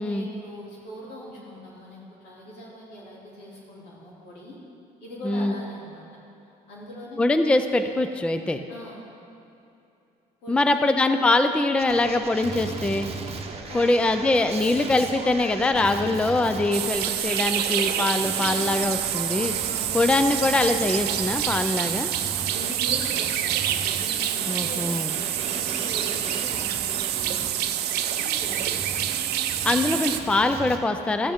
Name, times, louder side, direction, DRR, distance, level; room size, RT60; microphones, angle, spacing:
voice 1, 0.0-4.6 5.0-6.0 6.7-7.3 8.7-9.0 10.4-10.8 13.7-13.9 19.6-20.0 22.1-29.1, left 1 dB, 85° left, -4 dB, 2.7 m, -41 dB
voice 2, 5.2-5.6 7.2-8.6 10.5-13.1 13.7-19.5 19.9-22.1 24.5-25.1 29.6-31.3, left 2 dB, 5° left, 8 dB, 0.4 m, -23 dB
Male speech man speaking, 11.8-30.8, right 4 dB, 35° right, 0.9 m, -36 dB
sound 1, 16.7-30.2, right 11 dB, 75° right, 0.5 m, -27 dB
13.5 x 8.5 x 3.6 m, 2.7 s
cardioid pair, 110°, 17 cm